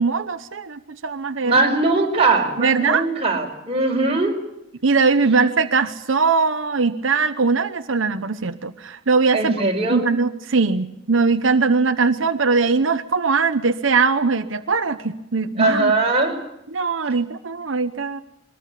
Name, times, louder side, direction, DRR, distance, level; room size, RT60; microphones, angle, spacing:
voice 1, 0.0-1.6 2.6-3.1 4.8-9.6 9.9-15.9 16.7-18.2, right 4 dB, 90° right, 8 dB, 0.9 m, -20 dB
voice 2, 1.4-4.4 9.3-10.1 15.6-16.4, right 2 dB, 30° right, 1 dB, 5.0 m, -20 dB
23.0 x 20.0 x 8.5 m, 0.84 s
head